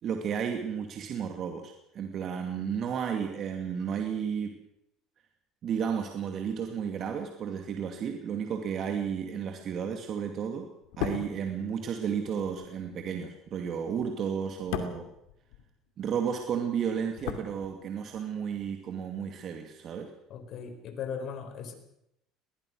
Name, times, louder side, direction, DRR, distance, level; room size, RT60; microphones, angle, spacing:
voice 1, 0.0-4.6 5.6-15.1 16.0-20.1, right 7 dB, 50° right, 5 dB, 2.4 m, -33 dB
sound 1, 10.8-16.1 16.4-18.2 18.5-18.7, left 10 dB, 85° left, 2.6 m, -39 dB
voice 2, 20.3-21.7, left 6 dB, 55° left, 8 dB, 4.7 m, -38 dB
22.0 x 19.0 x 6.4 m, 0.80 s
supercardioid pair, 95°, 0 cm